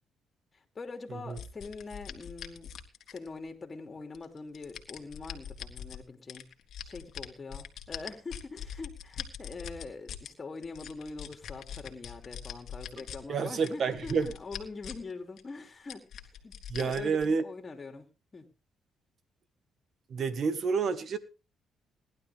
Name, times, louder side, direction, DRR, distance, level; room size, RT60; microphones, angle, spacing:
voice 1, 0.7-2.7 3.1-6.5 6.8-16.0 16.4-18.1 18.3-18.5, left 4 dB, 30° left, 5 dB, 3.0 m, -43 dB
sound 1, 1.4-3.5 4.1-6.0 6.3-10.3 10.6-13.2 13.6-15.1 15.4-15.5 15.9-17.2, left 9 dB, 70° left, 1.8 m, -42 dB
voice 2, 13.3-14.3 16.7-17.4 20.1-21.2, right 5 dB, 55° right, 12 dB, 1.6 m, -29 dB
18.0 x 11.5 x 3.5 m, 0.31 s
cardioid pair, 90°, 0 cm